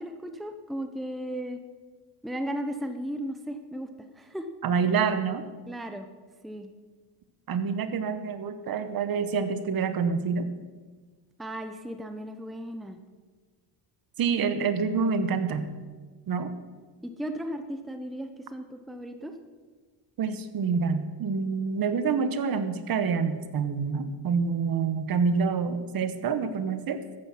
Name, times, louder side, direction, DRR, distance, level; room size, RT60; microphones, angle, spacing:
voice 1, 0.0-1.6 2.2-4.5 5.7-6.1 6.4-6.7 11.4-13.0 17.0-19.3, equal, ahead, 7 dB, 0.7 m, -35 dB
voice 2, 4.6-5.4 7.5-10.5 14.2-15.7 16.3-16.5 20.2-27.0, right 5 dB, 45° right, 11 dB, 1.1 m, -27 dB
13.5 x 9.6 x 5.7 m, 1.4 s
cardioid pair, 110°, 48 cm